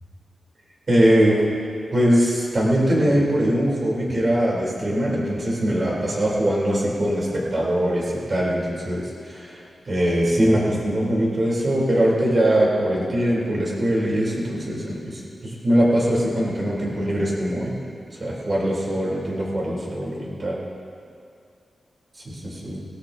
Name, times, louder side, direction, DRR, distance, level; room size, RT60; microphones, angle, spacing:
voice 1, 0.9-1.4 1.9-17.7 18.2-20.6 22.2-22.8, equal, 40° right, -4 dB, 4.0 m, -22 dB
18.5 x 17.5 x 2.9 m, 2.4 s
wide cardioid pair, 105°, 0 cm